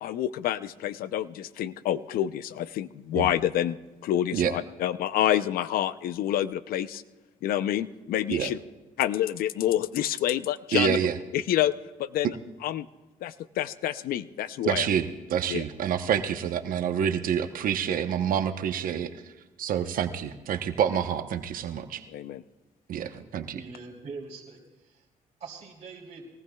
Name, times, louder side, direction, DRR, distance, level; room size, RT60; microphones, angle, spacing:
voice 1, 0.0-3.8 4.0-7.0 7.4-8.6 9.0-11.0 11.3-11.7 12.0-12.4 12.6-12.9 13.2-14.9 15.5-15.6 22.1-22.4, left 12 dB, 80° left, 14 dB, 0.6 m, -28 dB
voice 2, 10.7-11.1 14.6-19.1 19.6-22.0 22.9-23.6, right 8 dB, 70° right, 8 dB, 0.9 m, -27 dB
voice 3, 23.5-25.0 25.4-26.3, right 4 dB, 50° right, -5 dB, 3.0 m, -43 dB
22.5 x 18.5 x 2.3 m, 1.2 s
cardioid pair, 95°, 15 cm